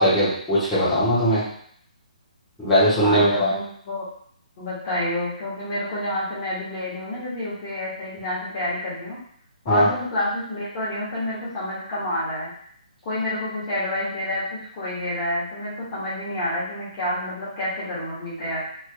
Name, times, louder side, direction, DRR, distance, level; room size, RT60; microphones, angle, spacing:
voice 1, 0.0-1.4 2.6-3.5 9.7-9.9, equal, 5° left, -14 dB, 1.4 m, -19 dB
voice 2, 3.0-4.0 4.6-9.2 9.6-12.5 13.0-14.4 14.8-18.6, left 1 dB, 35° left, -9 dB, 1.5 m, -28 dB
3.3 x 3.2 x 2.3 m, 0.63 s
hypercardioid pair, 155°, 4 cm